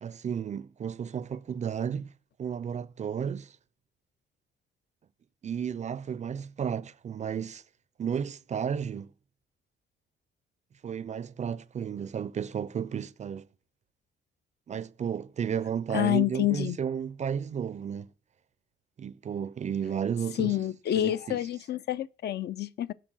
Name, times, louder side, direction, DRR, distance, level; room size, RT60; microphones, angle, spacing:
voice 1, 0.0-2.1 2.4-3.6 5.4-7.6 8.0-9.1 10.8-13.5 14.7-18.1 19.0-20.6 20.9-21.4, right 7 dB, 35° right, 0.4 m, -33 dB
voice 2, 15.9-16.8 20.4-22.9, left 13 dB, 55° left, 0.4 m, -28 dB
7.5 x 4.6 x 6.2 m
cardioid pair, 90°, 20 cm